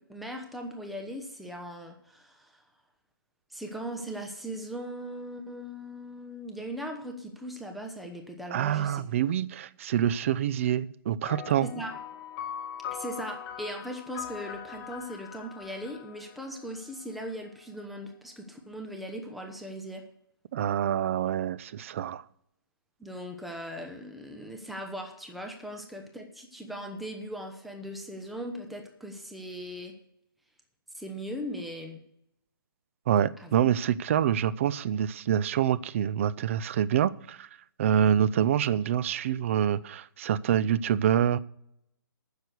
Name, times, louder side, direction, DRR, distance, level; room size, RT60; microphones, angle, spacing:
voice 1, 0.1-2.6 3.5-9.0 11.6-11.9 12.9-20.0 23.0-30.0 30.9-32.0 33.4-33.5, equal, ahead, 0.9 m, -39 dB
voice 2, 8.5-11.7 20.5-22.2 33.1-37.5 37.8-41.4, right 9 dB, 35° right, 0.4 m, -26 dB
sound 1, 11.2-17.0, left 9 dB, 25° left, 1.6 m, -41 dB
9.6 x 6.5 x 8.0 m
hypercardioid pair, 150°, 12 cm